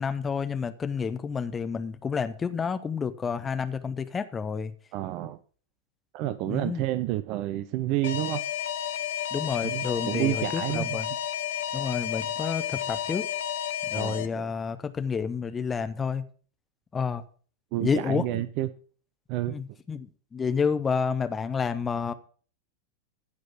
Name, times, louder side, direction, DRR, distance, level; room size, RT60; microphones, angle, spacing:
voice 1, 0.0-4.7 6.5-6.8 9.3-11.1 11.7-13.3 13.8-16.2 16.9-17.2 17.8-18.4 19.5-22.1, left 6 dB, 20° left, 0.8 m, -30 dB
voice 2, 4.9-5.4 6.1-8.4 9.6-11.0 13.9-14.5 17.7-18.7 19.3-19.5, right 14 dB, 40° right, 0.6 m, -30 dB
Alarm, 8.0-14.3, left 10 dB, 55° left, 0.9 m, -31 dB
15.0 x 5.2 x 5.9 m
figure-of-eight pair, 90°, 0 cm